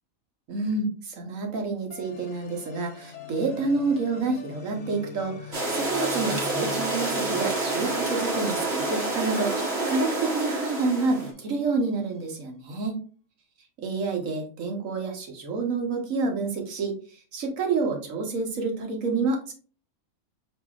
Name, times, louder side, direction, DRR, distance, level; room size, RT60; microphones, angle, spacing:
voice 1, 0.5-13.0 13.8-19.5, right 3 dB, 70° right, 2 dB, 1.4 m, -28 dB
sound 1, 1.9-12.2, left 6 dB, 75° left, 1.1 m, -44 dB
sound 2, 5.5-11.3, right 2 dB, 50° right, 1.3 m, -28 dB
6.2 x 3.3 x 2.4 m, 0.40 s
omnidirectional pair, 1.5 m